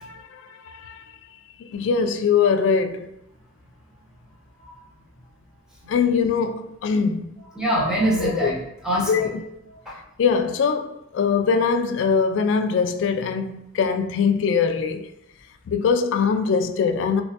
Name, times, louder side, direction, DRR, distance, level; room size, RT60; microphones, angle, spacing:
voice 1, 0.0-1.0 1.6-3.1 5.9-7.3 8.2-8.5 9.0-9.6 10.2-15.0 15.7-17.2, left 5 dB, 85° left, 0.3 m, -22 dB
voice 2, 7.6-9.3 9.9-10.0, right 1 dB, 5° right, 0.9 m, -24 dB
3.1 x 3.1 x 2.8 m
head